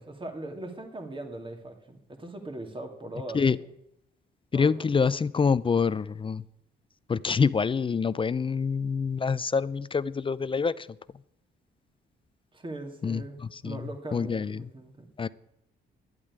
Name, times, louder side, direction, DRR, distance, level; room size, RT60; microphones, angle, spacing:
voice 1, 0.0-3.4 4.5-4.7 12.5-15.1, right 2 dB, 25° right, 4 dB, 2.5 m, -40 dB
voice 2, 4.5-6.4 7.1-10.9 13.0-13.8 14.1-14.7 15.2-15.3, left 5 dB, 25° left, 18 dB, 0.5 m, -26 dB
11.0 x 8.7 x 9.5 m, 0.79 s
cardioid pair, 90°, 20 cm